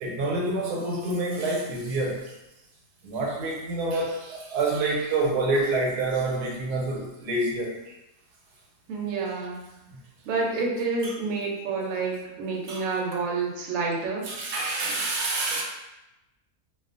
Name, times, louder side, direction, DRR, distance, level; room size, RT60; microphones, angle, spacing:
voice 1, 0.0-2.3 3.0-7.7 9.9-10.0 11.0-11.1 12.7-12.8 14.2-15.6, right 2 dB, 90° right, -2 dB, 1.2 m, -27 dB
voice 2, 8.9-9.6 10.2-14.3, right 4 dB, 65° right, -2 dB, 0.9 m, -29 dB
2.4 x 2.3 x 2.4 m, 0.95 s
omnidirectional pair, 1.6 m